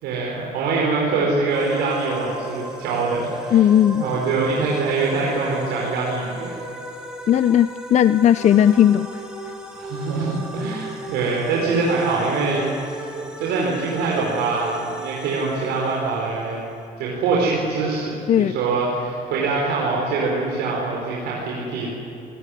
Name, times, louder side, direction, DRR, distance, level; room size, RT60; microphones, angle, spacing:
voice 1, 0.0-3.6 4.0-6.6 9.7-12.7 13.0-13.1 13.4-16.6 17.0-21.9, right 3 dB, 90° right, -3 dB, 4.9 m, -24 dB
sound 1, 1.5-16.9, right 1 dB, 5° right, 4.4 m, -36 dB
voice 2, 3.5-4.0 7.3-9.2 18.3-18.6, left 10 dB, 45° left, 13 dB, 0.6 m, -16 dB
28.0 x 18.5 x 10.0 m, 2.7 s
cardioid pair, 110°, 17 cm